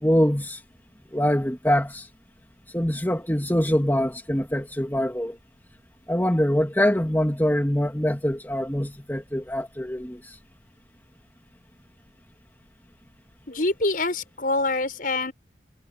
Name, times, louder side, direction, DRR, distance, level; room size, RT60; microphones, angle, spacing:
voice 1, 0.0-0.6 1.1-2.1 2.7-5.4 6.1-10.4, equal, 10° left, 2.7 m, -24 dB
voice 2, 13.5-15.3, left 2 dB, 50° left, 6.1 m, -25 dB
head